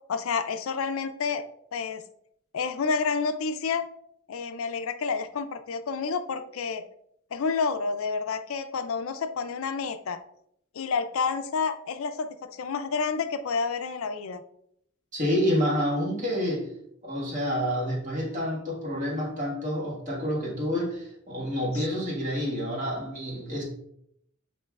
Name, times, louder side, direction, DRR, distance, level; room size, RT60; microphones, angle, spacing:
voice 1, 0.1-1.4 1.7-2.0 2.5-3.9 4.3-6.8 7.3-10.2 10.7-14.4 21.7-21.8, left 5 dB, 75° left, 0.4 m, -29 dB
voice 2, 15.1-16.7 17.0-23.6, equal, 35° right, 1.5 m, -28 dB
7.6 x 3.0 x 2.3 m
head